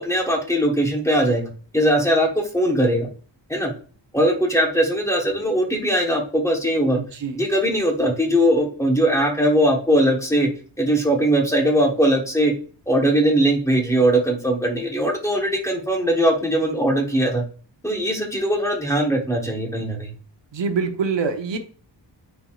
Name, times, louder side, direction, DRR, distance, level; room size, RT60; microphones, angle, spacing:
voice 1, 0.0-3.1 3.5-3.7 4.1-7.0 7.3-10.5 10.8-12.5 12.9-17.4 17.8-20.1, right 1 dB, 5° left, 1 dB, 1.2 m, -20 dB
voice 2, 6.9-7.4 20.5-21.6, right 5 dB, 70° right, 5 dB, 1.0 m, -25 dB
9.2 x 4.7 x 2.4 m, 0.43 s
wide cardioid pair, 180°, 45 cm